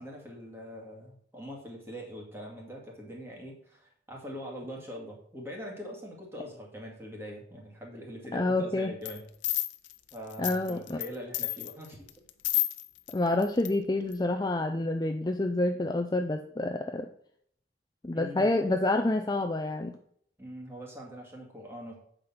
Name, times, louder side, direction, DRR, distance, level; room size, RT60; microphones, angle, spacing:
voice 1, 0.0-9.2 10.1-12.1 18.1-18.5 20.4-22.0, equal, 15° right, -1 dB, 2.1 m, -43 dB
voice 2, 8.3-8.9 10.4-11.0 13.1-17.1 18.0-19.9, left 2 dB, 20° left, 5 dB, 0.4 m, -28 dB
sound 1, 9.0-9.2 9.4-11.1 11.3-13.1 13.4-13.7 14.1-14.2, left 15 dB, 80° left, 0.6 m, -30 dB
8.0 x 5.2 x 5.7 m, 0.65 s
head